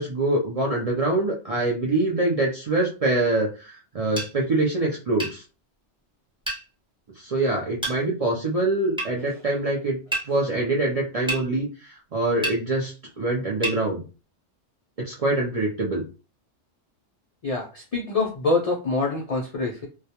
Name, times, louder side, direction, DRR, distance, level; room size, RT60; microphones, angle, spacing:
voice 1, 0.0-5.4 7.2-10.0 10.3-14.0 15.0-16.0, right 2 dB, 60° right, -2 dB, 0.3 m, -24 dB
sound 1, 4.2-4.3 5.2-5.4 6.5-6.6 7.8-8.0 9.0-9.1 10.1-10.3 11.3-11.4 12.4-12.6 13.6-13.8, right 1 dB, 5° right, 0.7 m, -28 dB
voice 2, 17.4-19.9, left 3 dB, 75° left, -1 dB, 0.3 m, -25 dB
2.2 x 2.1 x 2.8 m, 0.33 s
omnidirectional pair, 1.2 m